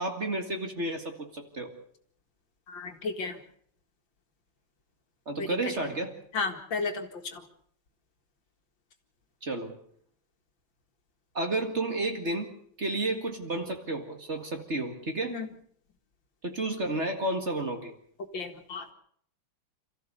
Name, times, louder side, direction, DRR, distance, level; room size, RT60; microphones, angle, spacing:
voice 1, 0.0-1.7 5.3-6.2 9.4-9.7 11.3-12.5 12.8-15.4 16.4-17.9, right 2 dB, 35° right, 5 dB, 2.1 m, -31 dB
voice 2, 2.7-3.4 5.4-5.5 6.3-7.4 15.3-15.5 18.3-18.9, left 4 dB, 65° left, 5 dB, 2.6 m, -33 dB
27.5 x 15.0 x 6.8 m, 0.63 s
omnidirectional pair, 2.3 m